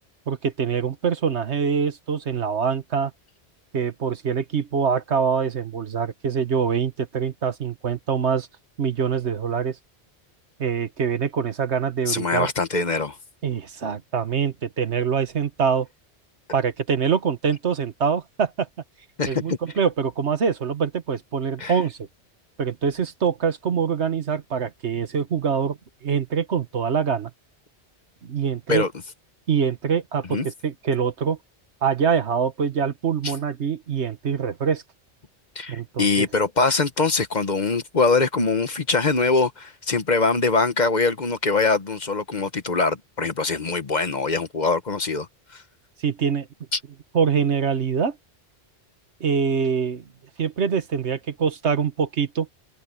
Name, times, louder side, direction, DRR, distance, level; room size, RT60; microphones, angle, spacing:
voice 1, 0.3-3.1 3.7-8.5 8.8-9.8 10.6-12.5 13.4-15.9 16.5-18.7 19.3-22.1 22.6-27.3 28.2-28.9 29.5-31.4 31.8-34.8 35.7-36.3 46.0-46.5 47.1-48.2 49.2-50.0 50.4-52.5, right 6 dB, 80° right, 1.6 m, -24 dB
voice 2, 12.1-13.2 19.2-19.6 21.6-21.8 28.7-28.9 30.3-30.5 33.2-33.3 35.6-45.3 45.5-45.6 46.7-46.8, left 3 dB, 40° left, 1.1 m, -23 dB
omnidirectional pair, 1.1 m